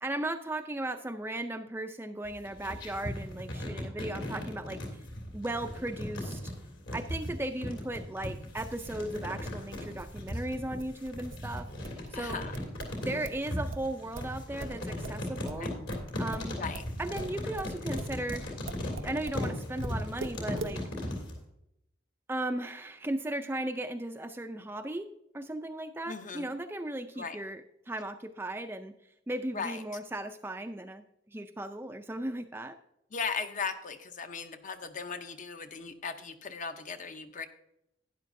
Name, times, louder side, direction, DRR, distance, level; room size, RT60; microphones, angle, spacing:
voice 1, 0.0-5.0 5.3-6.5 6.9-11.7 12.1-12.4 13.0-15.7 16.2-16.6 17.0-18.5 19.0-20.8 22.3-25.1 25.3-28.9 29.3-31.0 31.3-32.8, right 1 dB, 10° right, 7 dB, 0.4 m, -36 dB
sound 1, 2.2-21.4, left 1 dB, 70° left, 2.9 m, -37 dB
sound 2, 7.9-13.4 13.7-19.4 19.8-20.8, right 3 dB, 85° right, 0.7 m, -43 dB
voice 2, 12.1-12.5 15.5-15.7 16.6-16.8 26.1-26.5 27.2-27.4 29.5-29.8 33.1-37.5, left 5 dB, 40° left, 8 dB, 0.7 m, -37 dB
12.0 x 10.0 x 2.6 m, 0.82 s
head